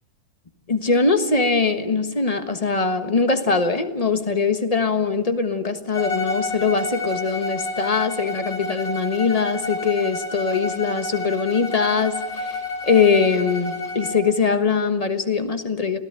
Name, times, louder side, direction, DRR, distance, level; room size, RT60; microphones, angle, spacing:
voice 1, 0.7-16.0, left 4 dB, 20° left, 1.3 m, -22 dB
Bowed string instrument, 5.9-14.3, left 2 dB, 75° left, 4.5 m, -30 dB
26.5 x 17.0 x 9.0 m
omnidirectional pair, 2.0 m